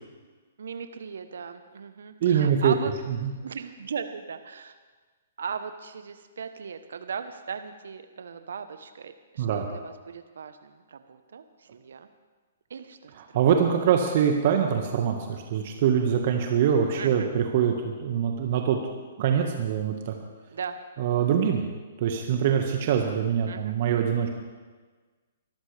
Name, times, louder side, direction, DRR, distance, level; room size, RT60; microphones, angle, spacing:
voice 1, 0.6-2.9 3.2-4.7 5.4-12.1 12.7-13.1 17.0-17.3 20.5-20.8 23.5-23.7, right 6 dB, 70° right, 9 dB, 1.1 m, -38 dB
voice 2, 2.2-2.7 3.2-3.3 9.4-9.6 13.1-18.8 19.2-20.1 21.0-21.6 22.0-24.3, right 8 dB, 50° right, 3 dB, 1.7 m, -24 dB
24.5 x 14.0 x 3.5 m, 1.4 s
figure-of-eight pair, 125°, 0 cm